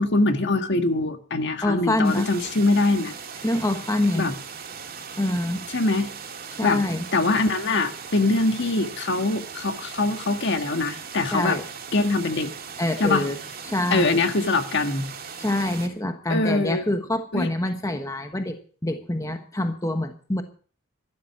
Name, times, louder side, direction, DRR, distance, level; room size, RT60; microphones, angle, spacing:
voice 1, 0.0-3.2 4.1-4.3 5.7-6.1 6.6-6.8 7.1-11.6 11.9-12.5 13.0-13.2 13.9-15.0 16.3-16.9 17.3-17.5, left 2 dB, 55° left, 1.7 m, -23 dB
voice 2, 1.6-2.3 3.4-4.3 5.2-5.6 6.6-7.0 11.3-11.6 12.8-13.4 13.6-14.2 15.4-18.6 18.8-20.4, left 1 dB, 15° left, 1.2 m, -25 dB
sound 1, 2.0-15.9, right 6 dB, 45° right, 2.3 m, -39 dB
13.0 x 12.5 x 5.9 m
head